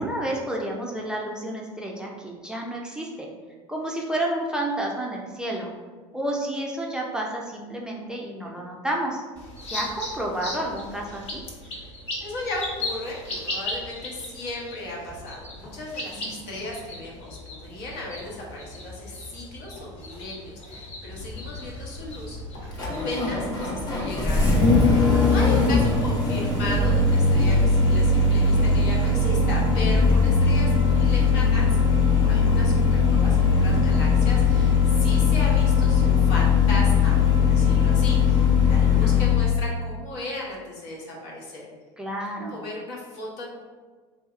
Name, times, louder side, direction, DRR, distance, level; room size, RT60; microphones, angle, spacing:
voice 1, 0.0-3.3 3.7-5.7 6.1-9.2 9.7-11.4 16.1-16.5 25.0-25.7 38.8-39.2 42.0-42.7, right 1 dB, 5° right, -2 dB, 0.4 m, -31 dB
sound 1, 9.4-23.7, left 2 dB, 45° left, 1.2 m, -38 dB
voice 2, 12.2-41.7 42.4-43.6, left 1 dB, 70° left, -3 dB, 1.0 m, -36 dB
Engine starting, 21.1-39.5, left 4 dB, 25° left, 0.8 m, -20 dB
3.2 x 2.7 x 2.4 m, 1.4 s
hypercardioid pair, 95°, 15 cm